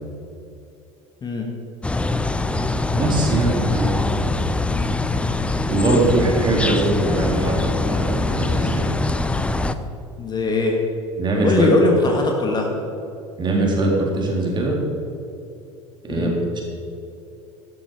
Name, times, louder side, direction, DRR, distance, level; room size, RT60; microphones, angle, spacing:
sound 1, 1.8-9.7, left 2 dB, 5° left, 0.6 m, -23 dB
voice 1, 3.0-4.3 5.7-8.9 11.2-11.7 13.4-14.8 16.0-16.6, right 2 dB, 30° right, -1 dB, 3.4 m, -22 dB
voice 2, 10.2-10.8 11.4-12.7 16.1-16.3, left 3 dB, 25° left, 1 dB, 1.8 m, -20 dB
13.0 x 12.0 x 4.9 m, 2.8 s
figure-of-eight pair, 70°, 16 cm